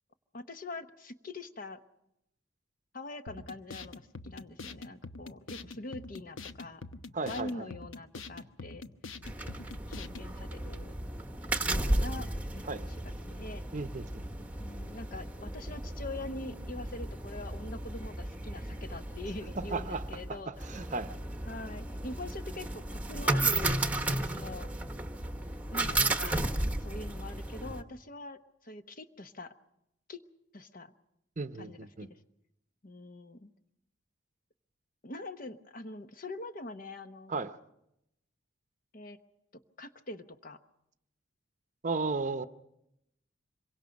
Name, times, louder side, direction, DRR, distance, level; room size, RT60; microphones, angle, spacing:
voice 1, 0.3-1.8 2.9-6.8 7.3-8.9 9.9-10.9 11.7-13.6 14.6-20.5 21.5-24.7 25.7-26.4 26.8-29.5 30.1-30.2 30.5-30.9 31.6-31.8 32.1-32.2 32.8-33.5 35.0-37.3 38.9-39.2 39.8-40.6, left 2 dB, 45° left, 1.0 m, -43 dB
sound 1, 3.3-10.3, left 3 dB, 90° left, 0.9 m, -45 dB
voice 2, 7.1-7.7 12.7-12.8 13.7-14.2 19.6-20.0 20.3-20.4 20.7-21.1 31.4-32.1 37.3-37.6 41.8-42.4, right 3 dB, 40° right, 0.7 m, -34 dB
sound 2, 9.2-27.8, right 2 dB, 10° right, 1.2 m, -34 dB
26.0 x 23.5 x 5.3 m
head